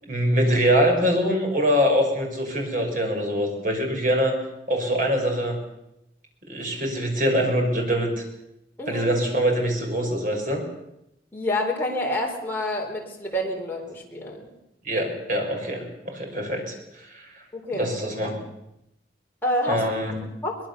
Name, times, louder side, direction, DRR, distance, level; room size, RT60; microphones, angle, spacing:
voice 1, 0.1-4.4 4.7-5.6 6.5-8.1 8.9-10.6 14.8-17.3 17.8-18.4 19.7-20.2, equal, 45° right, 2 dB, 6.1 m, -24 dB
voice 2, 11.3-14.5 17.5-17.9 19.4-19.8 20.4-20.6, left 1 dB, 10° left, -1 dB, 4.3 m, -27 dB
24.0 x 20.5 x 7.1 m, 0.84 s
head